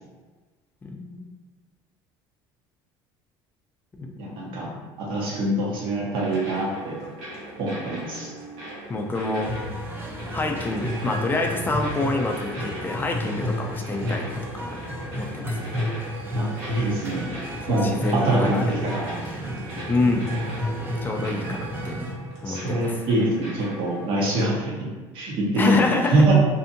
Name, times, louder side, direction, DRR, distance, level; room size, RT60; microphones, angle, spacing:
voice 1, 0.9-1.2 3.9-4.1 4.7-4.9 8.9-9.5 10.3-14.8 15.1-15.7 17.6-18.7 19.9-20.3 21.0-22.0 22.4-23.0 25.6-26.3, left 2 dB, 20° left, 2 dB, 0.4 m, -27 dB
voice 2, 4.2-4.7 5.0-6.9 7.6-8.3 16.3-17.2 17.7-19.2 22.4-24.7 25.1-26.3, right 1 dB, 60° right, -4 dB, 0.9 m, -24 dB
sound 1, 6.1-24.4, right 1 dB, 75° right, 1.1 m, -40 dB
sound 2, 9.4-22.1, equal, 20° right, 0.7 m, -31 dB
2.6 x 2.5 x 2.5 m, 1.3 s
supercardioid pair, 110°, 10 cm